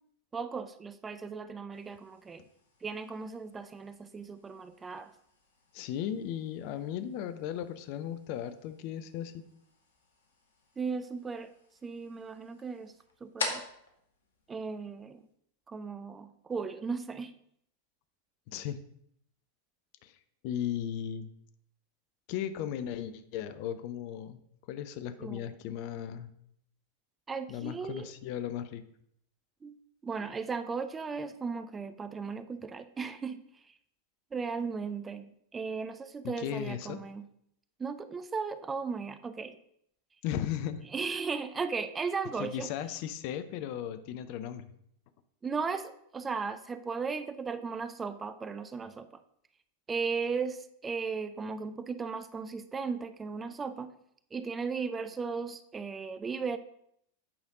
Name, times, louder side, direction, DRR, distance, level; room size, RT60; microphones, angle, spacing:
voice 1, 0.3-2.4 2.8-5.1 10.8-11.5 11.8-12.9 13.2-13.6 14.5-15.2 15.7-17.3 25.2-25.5 27.3-28.1 29.6-29.8 30.0-33.4 34.3-37.2 37.8-39.6 40.9-42.7 45.4-49.1 49.9-50.6 50.8-53.9 54.3-56.6, right 5 dB, 15° right, 12 dB, 0.4 m, -36 dB
sound 1, 1.7-15.3, left 3 dB, 70° left, 1.2 m, -46 dB
voice 2, 5.7-9.4 18.5-18.8 20.0-20.2 20.4-21.3 22.3-24.4 24.7-26.3 27.5-28.8 36.2-37.0 40.2-40.8 42.3-44.7, left 10 dB, 45° left, 11 dB, 0.5 m, -36 dB
8.6 x 5.1 x 3.8 m, 0.71 s
figure-of-eight pair, 90°, 0 cm